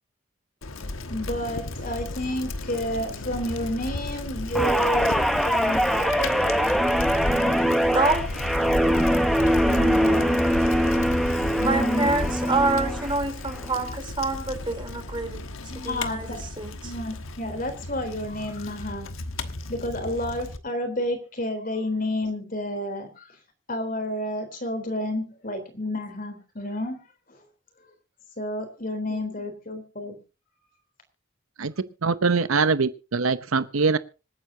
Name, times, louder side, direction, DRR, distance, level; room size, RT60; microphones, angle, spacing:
Bicycle, 0.6-20.6, left 2 dB, 75° left, 1.3 m, -33 dB
voice 1, 1.1-6.9 7.3-7.7 9.6-10.4 11.6-12.1 15.7-16.4 16.8-19.1 19.7-23.4 23.7-27.4 28.4-30.2, left 1 dB, 40° left, 7 dB, 3.7 m, -30 dB
Guitar, 4.5-13.1 13.5-13.8, equal, ahead, 1.1 m, -23 dB
voice 2, 7.9-8.2 11.6-15.4 15.7-16.9 29.1-29.2, right 3 dB, 25° right, 6 dB, 3.6 m, -27 dB
voice 3, 32.0-34.0, right 4 dB, 80° right, 13 dB, 0.8 m, -23 dB
26.0 x 9.5 x 2.8 m, 0.32 s
head